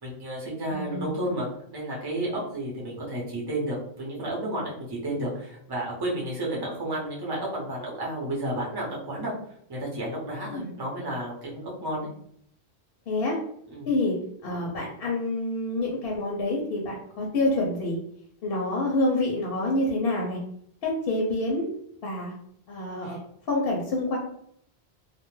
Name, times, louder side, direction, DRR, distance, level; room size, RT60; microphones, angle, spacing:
voice 1, 0.0-9.3 9.7-12.1 13.7-13.9 23.0-23.2, right 1 dB, 25° right, -4 dB, 0.6 m, -32 dB
voice 2, 0.7-1.1 10.5-10.7 13.1-13.4 13.9-14.2 14.4-18.0 18.4-20.4 20.8-21.7 22.0-22.3 22.7-23.2 23.5-24.2, left 2 dB, 70° left, -1 dB, 0.7 m, -27 dB
2.2 x 2.1 x 3.0 m, 0.68 s
omnidirectional pair, 1.1 m